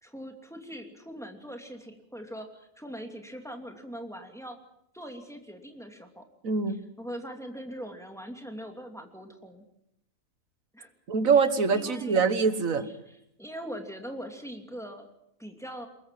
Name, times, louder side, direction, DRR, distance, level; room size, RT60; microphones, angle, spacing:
voice 1, 0.0-4.6 4.9-6.2 7.0-9.6 10.7-10.9 11.7-12.2 13.1-15.1 15.4-15.9, equal, ahead, 3 dB, 2.8 m, -41 dB
voice 2, 6.4-6.8 11.1-12.9, right 5 dB, 70° right, 11 dB, 1.8 m, -24 dB
23.0 x 21.0 x 7.7 m, 0.77 s
omnidirectional pair, 1.4 m